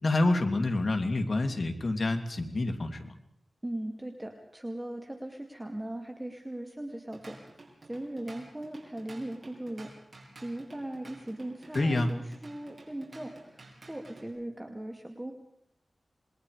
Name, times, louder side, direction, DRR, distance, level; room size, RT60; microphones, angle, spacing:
voice 1, 0.0-3.1 11.7-12.1, left 2 dB, 50° left, 4 dB, 2.9 m, -27 dB
voice 2, 3.6-7.5 7.9-9.9 10.4-15.3, right 1 dB, 15° right, 3 dB, 2.4 m, -39 dB
Drum kit / Drum, 6.9-14.3, right 2 dB, 50° right, 7.0 m, -52 dB
27.5 x 21.5 x 5.0 m, 0.70 s
wide cardioid pair, 90°, 0 cm